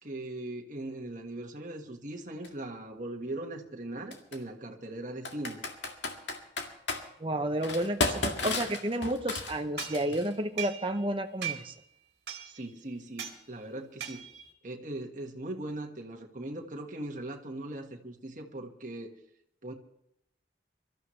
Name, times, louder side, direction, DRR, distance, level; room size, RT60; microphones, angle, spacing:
voice 1, 0.0-5.6 12.4-14.2 14.6-19.1 19.6-19.7, right 1 dB, 45° right, 2 dB, 1.6 m, -39 dB
Computer keyboard, 2.4-2.5 4.1-4.4 5.2-7.0 7.6-10.3, left 3 dB, 80° left, 1.9 m, -33 dB
voice 2, 7.2-11.7, right 1 dB, 30° right, 6 dB, 0.8 m, -31 dB
sound 1, 9.8-11.1 11.4-11.8 12.3-12.7 13.2-13.4 14.0-14.5, right 10 dB, 65° right, 2.1 m, -39 dB
24.5 x 13.0 x 3.2 m, 0.76 s
head